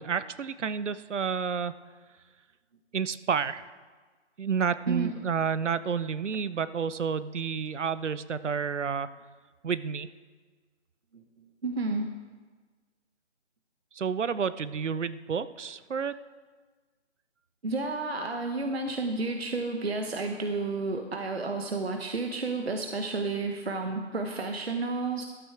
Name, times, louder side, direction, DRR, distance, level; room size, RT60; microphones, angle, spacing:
voice 1, 0.0-1.7 2.9-3.7 4.4-9.1 9.6-10.1 13.9-16.2, right 6 dB, 80° right, 15 dB, 0.7 m, -30 dB
voice 2, 11.6-12.1 17.6-25.2, right 3 dB, 60° right, 5 dB, 1.0 m, -31 dB
12.5 x 8.2 x 4.5 m, 1.4 s
figure-of-eight pair, 175°, 36 cm